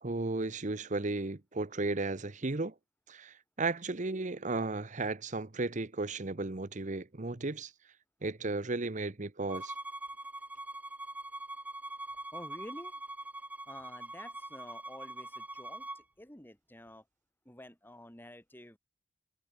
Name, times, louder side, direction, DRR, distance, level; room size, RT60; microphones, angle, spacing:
voice 1, 0.0-2.7 3.1-7.7 8.2-9.7, right 3 dB, 45° right, 1.1 m, -34 dB
Bowed string instrument, 9.5-16.0, right 2 dB, 10° right, 1.5 m, -43 dB
voice 2, 12.3-13.0 13.7-17.0 17.4-18.8, left 1 dB, 10° left, 2.7 m, -50 dB
head